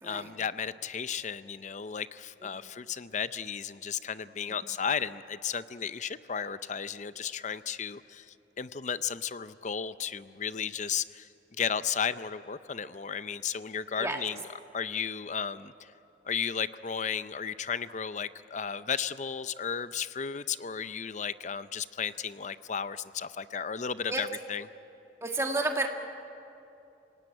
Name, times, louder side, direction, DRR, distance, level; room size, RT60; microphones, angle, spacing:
voice 1, 0.0-11.3 11.6-14.5 14.7-15.9 16.3-24.7, left 7 dB, 40° left, 14 dB, 0.5 m, -34 dB
voice 2, 25.2-25.9, right 2 dB, 15° right, 3 dB, 1.7 m, -30 dB
27.5 x 18.0 x 9.6 m, 2.7 s
head